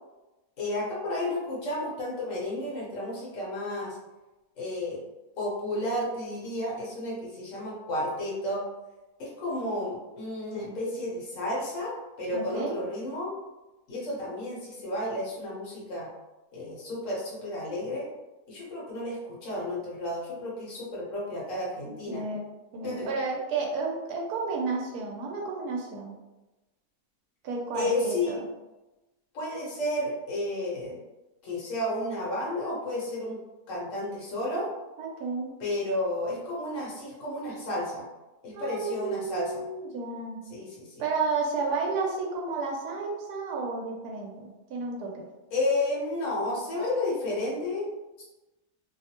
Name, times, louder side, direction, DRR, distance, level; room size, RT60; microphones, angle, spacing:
voice 1, 0.6-4.0 4.6-5.0 5.4-8.6 9.2-13.3 13.9-16.1 16.5-18.1 18.5-22.2 22.8-23.1 27.7-28.4 29.3-31.0 31.4-33.4 33.7-34.7 35.6-38.0 38.4-39.6 40.5-40.9 45.5-47.9 48.2-48.3, left 1 dB, 60° left, -5 dB, 1.2 m, -32 dB
voice 2, 12.3-12.8 21.8-22.5 22.7-26.1 27.4-28.4 35.0-35.5 38.5-40.4 41.0-45.3, right 4 dB, 80° right, 0 dB, 1.1 m, -32 dB
2.9 x 2.0 x 2.8 m, 1.1 s
omnidirectional pair, 1.7 m